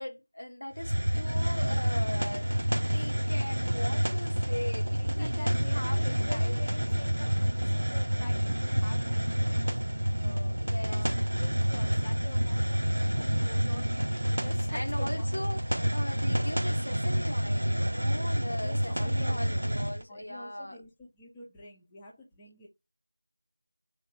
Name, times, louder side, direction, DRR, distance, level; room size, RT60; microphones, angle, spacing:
voice 1, 0.0-2.5 2.9-7.0 10.5-11.0 13.4-13.6 14.7-20.8, left 1 dB, 75° left, 1.3 m, -39 dB
Hiss, 0.8-20.0, equal, 70° right, 0.5 m, -28 dB
voice 2, 5.0-10.6 10.9-15.3 18.5-22.7, left 2 dB, 5° left, 0.7 m, -47 dB
3.3 x 2.9 x 2.9 m
figure-of-eight pair, 175°, 0 cm